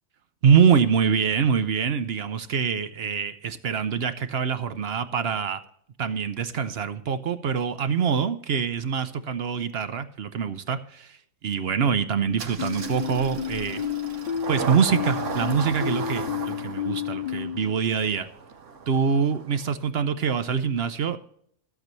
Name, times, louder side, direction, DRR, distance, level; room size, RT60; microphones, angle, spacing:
voice 1, 0.4-5.6 6.0-13.8 14.5-18.3 18.9-21.2, right 6 dB, 60° right, 11 dB, 0.8 m, -24 dB
Engine starting, 12.4-19.7, right 5 dB, 80° right, 1.5 m, -36 dB
sound 1, 12.6-17.7, left 9 dB, 65° left, 0.4 m, -31 dB
13.5 x 8.1 x 3.1 m, 0.66 s
omnidirectional pair, 1.3 m